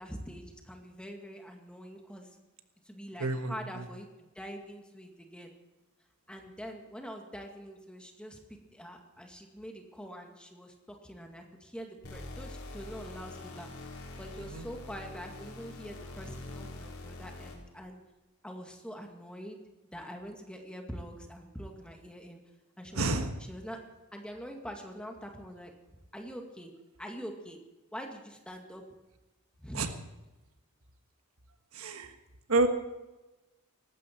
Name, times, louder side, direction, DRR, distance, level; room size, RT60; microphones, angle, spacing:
voice 1, 0.0-2.3 2.9-5.5 6.3-8.4 8.7-13.7 14.2-18.0 18.4-19.6 19.9-22.4 22.8-23.1 23.5-23.8 24.1-25.7 26.1-26.7 27.0-27.6 27.9-28.8 29.6-29.8, equal, 5° left, 2 dB, 2.0 m, -44 dB
voice 2, 3.2-3.9 14.4-14.7 22.9-23.3 29.7-29.9 31.7-32.1 32.5-32.7, right 2 dB, 80° right, 7 dB, 1.5 m, -29 dB
sound 1, 12.0-17.8, left 2 dB, 80° left, 4.4 m, -44 dB
18.5 x 15.0 x 4.6 m, 1.1 s
head